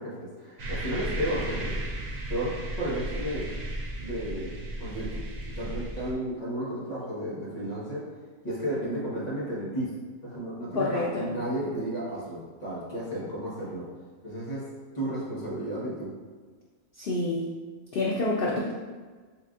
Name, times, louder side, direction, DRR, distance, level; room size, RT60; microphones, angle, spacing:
voice 1, 0.0-1.7 2.3-3.5 4.0-5.2 5.4-8.1 8.4-9.9 10.2-13.9 14.2-14.7 14.9-16.1, right 1 dB, 30° left, -7 dB, 1.1 m, -33 dB
sound 1, 0.6-6.1, right 1 dB, 65° right, 0.4 m, -35 dB
voice 2, 10.7-11.3 17.0-17.4 17.9-18.7, left 2 dB, 90° left, -3 dB, 0.4 m, -27 dB
5.9 x 2.5 x 2.4 m, 1.4 s
omnidirectional pair, 1.5 m